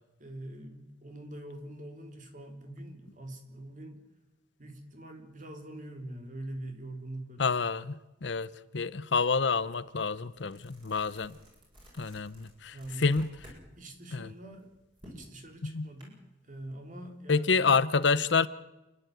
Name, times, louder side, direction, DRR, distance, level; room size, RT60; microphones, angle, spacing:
voice 1, 0.2-4.0 4.6-7.5 12.7-13.1 13.8-14.7 15.0-16.2 16.4-17.5, right 1 dB, 45° right, 3.6 m, -44 dB
voice 2, 7.4-7.9 8.2-8.5 8.7-11.4 12.0-13.3 14.1-14.3 15.6-15.9 17.3-18.5, left 4 dB, 70° left, 0.8 m, -28 dB
sound 1, 9.3-9.5 9.9-13.6 14.0-16.0, equal, 25° right, 7.5 m, -54 dB
28.5 x 11.0 x 9.3 m
head